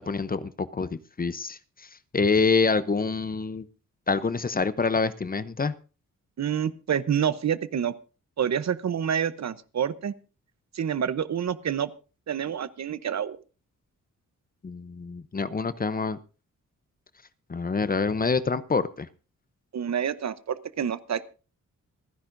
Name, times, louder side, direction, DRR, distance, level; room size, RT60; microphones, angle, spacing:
voice 1, 0.0-1.6 2.1-3.6 4.1-5.7 14.6-16.2 17.5-19.1, left 4 dB, 30° left, 14 dB, 0.7 m, -26 dB
voice 2, 6.4-7.9 8.4-10.1 10.7-11.9 12.3-13.4 19.7-21.3, right 8 dB, 55° right, 14 dB, 0.9 m, -28 dB
27.0 x 10.5 x 2.6 m, 0.35 s
wide cardioid pair, 110°, 32 cm